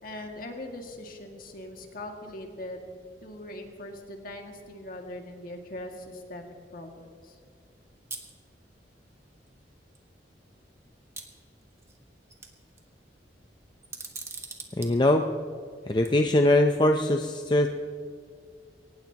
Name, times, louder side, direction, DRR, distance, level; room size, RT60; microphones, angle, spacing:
voice 1, 0.0-2.8 3.2-7.4, left 1 dB, 50° left, 2 dB, 2.2 m, -41 dB
sound 1, 8.1-8.3 9.5-9.6 10.0-10.1 11.2-12.0 12.3-12.8 13.8-14.9 15.9-16.1, right 4 dB, 15° right, 1.4 m, -40 dB
voice 2, 14.8-15.3 15.9-17.7, left 1 dB, 25° left, 4 dB, 0.6 m, -22 dB
23.0 x 19.0 x 3.0 m, 2.2 s
head